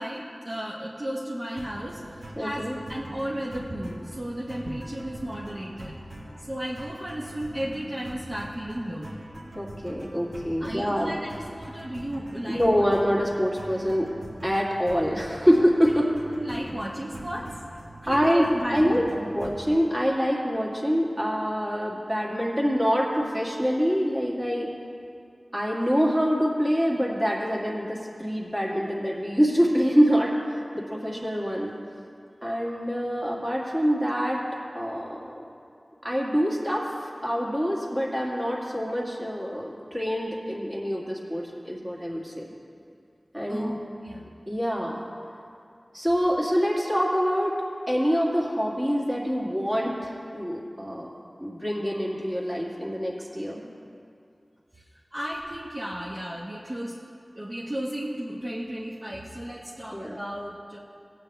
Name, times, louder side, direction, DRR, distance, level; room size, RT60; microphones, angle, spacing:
voice 1, 0.0-2.0 2.4-5.9 6.5-9.2 10.6-12.6 16.0-17.5 18.0-19.0 43.5-43.7 44.0-44.3 55.1-56.9 57.3-60.8, equal, 40° right, -6 dB, 1.2 m, -34 dB
sound 1, 1.6-19.7, right 1 dB, 70° right, 1.7 m, -43 dB
voice 2, 2.4-2.8 9.5-11.1 12.5-14.1 14.4-16.1 18.1-24.7 25.5-31.7 32.4-34.4 34.7-35.5 36.0-42.5 43.3-43.8 44.5-45.1 45.9-47.5 47.9-51.1 51.4-53.7 59.9-60.2, equal, 25° right, -4 dB, 2.2 m, -25 dB
18.0 x 8.5 x 3.4 m, 2.4 s
wide cardioid pair, 55°, 0 cm